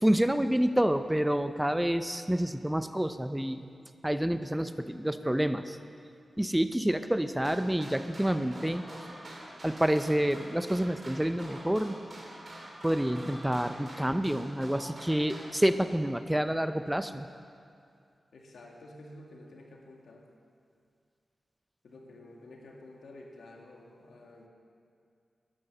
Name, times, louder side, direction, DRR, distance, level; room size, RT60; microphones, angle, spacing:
voice 1, 0.0-3.6 4.0-5.8 6.4-8.8 9.6-12.0 12.8-17.3, right 1 dB, 10° right, 10 dB, 0.5 m, -28 dB
sound 1, 7.3-15.5, right 1 dB, 45° right, 3.1 m, -46 dB
voice 2, 18.3-20.3 21.8-24.5, left 2 dB, 85° left, -1 dB, 1.8 m, -50 dB
11.0 x 9.8 x 6.7 m, 2.4 s
wide cardioid pair, 75°, 0 cm